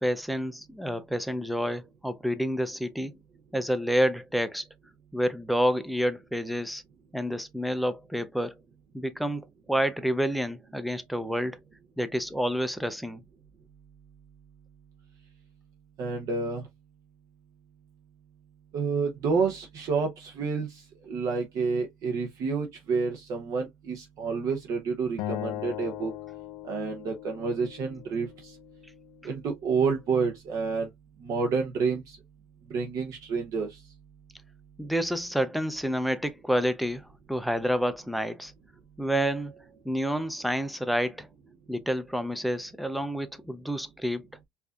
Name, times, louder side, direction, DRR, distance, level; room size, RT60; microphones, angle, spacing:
voice 1, 0.0-3.2 3.5-4.6 5.1-6.8 7.1-8.5 8.9-11.6 12.0-13.2 34.8-38.5 39.0-41.3 41.7-44.3, equal, ahead, 0.4 m, -29 dB
voice 2, 16.0-16.6 18.7-26.1 26.6-28.6 29.2-30.9 31.2-32.2 32.7-33.8, right 5 dB, 45° right, 0.8 m, -29 dB
Acoustic guitar, 25.2-28.4, left 13 dB, 55° left, 0.4 m, -38 dB
4.6 x 2.6 x 2.3 m
cardioid pair, 140°, 8 cm